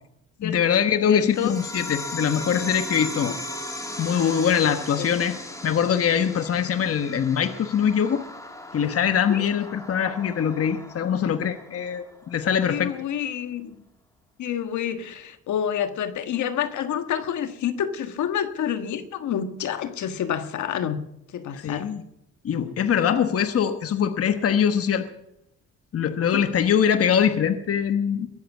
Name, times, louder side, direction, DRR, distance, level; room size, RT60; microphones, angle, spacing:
voice 1, 0.4-3.4 4.0-5.4 5.6-8.2 8.7-12.9 21.6-22.0 22.4-25.0 25.9-28.3, left 8 dB, 50° left, 9 dB, 1.2 m, -23 dB
voice 2, 1.1-1.5 3.2-3.3 9.3-9.5 12.7-13.7 14.4-21.0 21.3-21.9 26.3-26.4, left 9 dB, 75° left, 9 dB, 1.5 m, -28 dB
sound 1, 1.3-12.3, left 1 dB, 10° left, 2.3 m, -37 dB
21.5 x 7.8 x 8.4 m, 0.82 s
cardioid pair, 90°, 30 cm